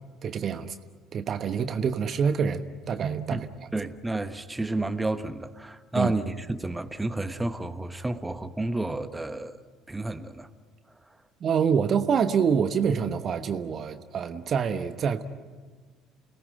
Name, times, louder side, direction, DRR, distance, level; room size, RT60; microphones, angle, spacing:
voice 1, 0.2-0.7 1.1-3.5 5.9-6.1 11.4-15.2, right 6 dB, 45° right, 1.2 m, -26 dB
voice 2, 3.7-9.6 9.9-10.5, right 2 dB, 10° right, 1.3 m, -31 dB
29.0 x 18.5 x 9.3 m
figure-of-eight pair, 60°, 0 cm